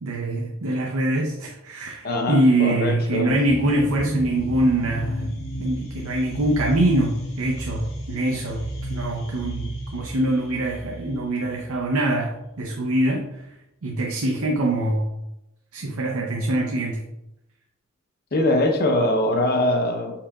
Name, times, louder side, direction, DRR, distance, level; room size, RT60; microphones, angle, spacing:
voice 1, 0.0-13.5 13.8-15.1 15.7-17.0, right 1 dB, 90° right, 0 dB, 0.6 m, -24 dB
voice 2, 2.0-3.3 18.3-20.3, left 1 dB, 45° left, 3 dB, 0.7 m, -22 dB
sound 1, 3.3-11.9, right 1 dB, 70° left, 1.5 m, -33 dB
5.6 x 3.8 x 2.3 m, 0.88 s
head